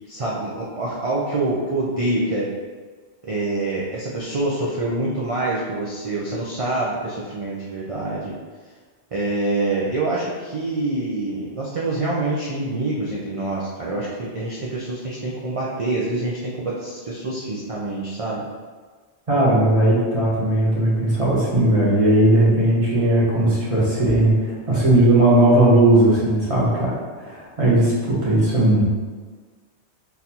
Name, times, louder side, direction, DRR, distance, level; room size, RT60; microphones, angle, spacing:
voice 1, 0.1-2.5 3.2-8.3 9.1-18.4, right 2 dB, 55° right, -5 dB, 0.4 m, -26 dB
voice 2, 19.3-28.8, right 1 dB, 30° right, -7 dB, 0.9 m, -17 dB
3.9 x 2.6 x 2.8 m, 1.5 s
omnidirectional pair, 1.2 m